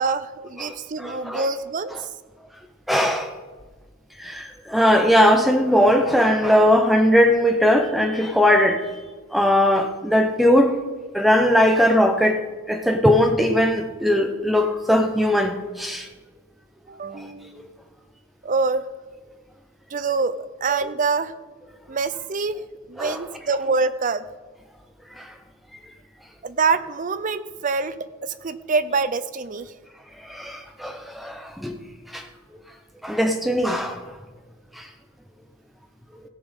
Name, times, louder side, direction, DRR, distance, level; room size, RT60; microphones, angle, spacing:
voice 1, 0.0-1.9 16.9-17.6 18.4-18.9 19.9-21.3 21.9-22.6 22.9-24.2 26.4-29.7, right 4 dB, 40° right, 14 dB, 0.5 m, -25 dB
voice 2, 0.6-1.5 2.9-3.3 4.2-8.9 9.3-10.8 11.1-16.1 23.0-23.2 25.2-25.3 30.3-31.8 32.1-32.2 33.0-34.0 34.8-34.9, equal, ahead, 4 dB, 0.9 m, -19 dB
17.0 x 6.1 x 5.2 m, 1.4 s
head